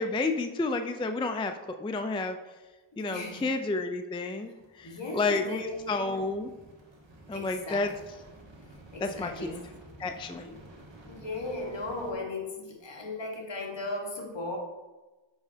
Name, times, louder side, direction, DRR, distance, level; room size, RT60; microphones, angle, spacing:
voice 1, 0.0-2.4 3.0-4.5 4.8-6.5 7.3-7.9 9.0-9.6 10.0-10.5, left 3 dB, 10° left, 7 dB, 0.3 m, -30 dB
voice 2, 2.9-3.5 4.8-6.3 7.3-7.9 8.9-9.7 10.3-10.6 11.1-14.6, left 2 dB, 60° left, 0 dB, 1.4 m, -37 dB
sound 1, 4.6-12.1, right 1 dB, 60° right, 1.5 m, -52 dB
7.1 x 5.1 x 2.7 m, 1.2 s
wide cardioid pair, 55°, 49 cm